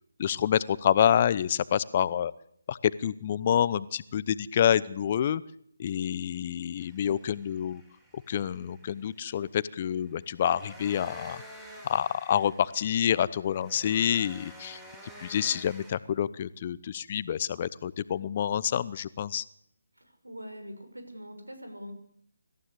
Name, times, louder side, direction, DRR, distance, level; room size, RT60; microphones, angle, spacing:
voice 1, 0.2-2.3 2.7-5.4 5.8-7.8 8.3-11.4 11.9-14.8 15.2-19.4, left 9 dB, 35° left, 18 dB, 0.8 m, -27 dB
sound 1, 6.8-15.9, right 1 dB, 5° right, 5.0 m, -50 dB
voice 2, 20.0-21.9, equal, 85° right, 7 dB, 6.4 m, -43 dB
25.0 x 15.0 x 8.3 m, 0.68 s
figure-of-eight pair, 150°, 0 cm